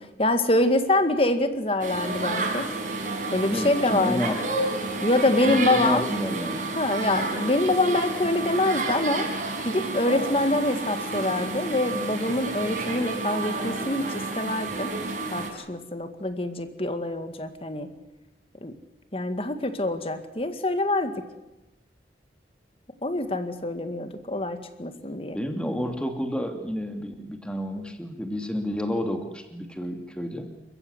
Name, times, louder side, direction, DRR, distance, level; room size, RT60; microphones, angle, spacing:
voice 1, 0.2-2.7 3.3-4.3 5.0-6.1 6.8-9.3 9.6-14.9 15.3-17.9 18.6-18.7 19.1-21.1 23.0-25.4, left 2 dB, 30° left, 9 dB, 2.1 m, -25 dB
sound 1, 1.8-15.5, right 3 dB, 45° right, 5.5 m, -30 dB
voice 2, 3.5-4.6 5.4-6.7 25.3-30.5, equal, 5° left, 5 dB, 2.6 m, -30 dB
28.5 x 15.0 x 9.7 m, 0.99 s
head